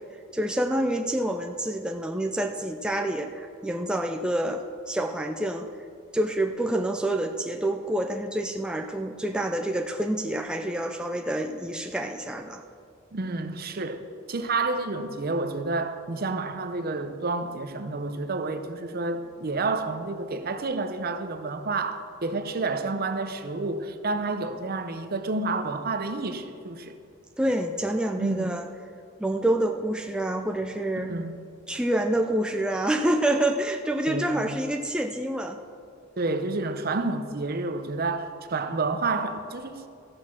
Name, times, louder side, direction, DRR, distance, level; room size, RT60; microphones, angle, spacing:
voice 1, 0.3-5.7 6.1-12.6 27.4-28.7 29.2-31.1 31.7-35.6, right 1 dB, 5° right, 0.4 m, -27 dB
voice 2, 13.1-14.0 14.3-26.9 28.2-28.6 31.0-31.4 34.1-34.6 36.2-39.9, right 3 dB, 50° right, 0.7 m, -29 dB
14.5 x 6.4 x 6.1 m
head